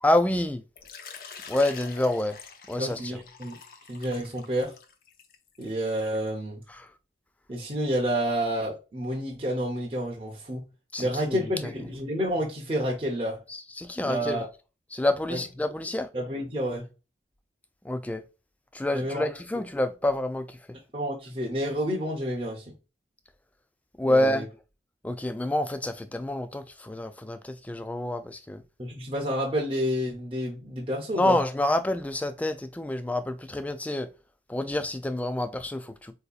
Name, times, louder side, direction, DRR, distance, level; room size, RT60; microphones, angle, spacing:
voice 1, 0.0-0.6 1.5-2.4 2.7-3.2 6.7-6.9 10.9-11.7 13.5-14.4 14.9-16.1 17.8-18.2 18.7-20.6 24.0-24.5 25.0-28.6 31.1-34.1 34.5-36.1, left 1 dB, 10° left, 0.3 m, -28 dB
Water / Liquid, 0.8-6.3, left 5 dB, 50° left, 0.6 m, -46 dB
voice 2, 2.8-3.6 3.9-4.7 5.6-6.6 7.5-10.7 11.0-13.4 14.0-14.4 15.3-15.4 16.1-16.9 18.9-19.3 20.9-22.7 24.0-24.4 28.8-31.4, equal, 30° right, 0.7 m, -29 dB
4.0 x 2.7 x 2.3 m
head